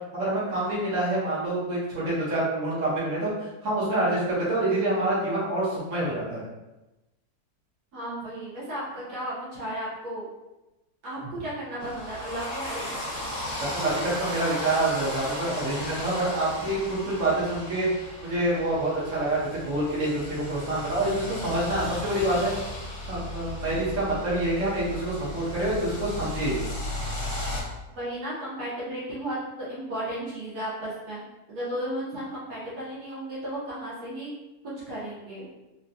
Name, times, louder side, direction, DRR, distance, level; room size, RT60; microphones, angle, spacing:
voice 1, 0.1-6.4 13.7-17.9 18.2-22.5 23.1-26.6, right 1 dB, 55° right, -7 dB, 1.3 m, -27 dB
voice 2, 7.9-10.3 11.0-13.2 27.9-31.2 31.5-34.3 34.9-35.5, right 1 dB, 90° right, -8 dB, 1.6 m, -34 dB
sound 1, 11.8-27.6, left 1 dB, 40° left, 1.2 m, -35 dB
3.8 x 2.2 x 2.7 m, 1.0 s
omnidirectional pair, 1.6 m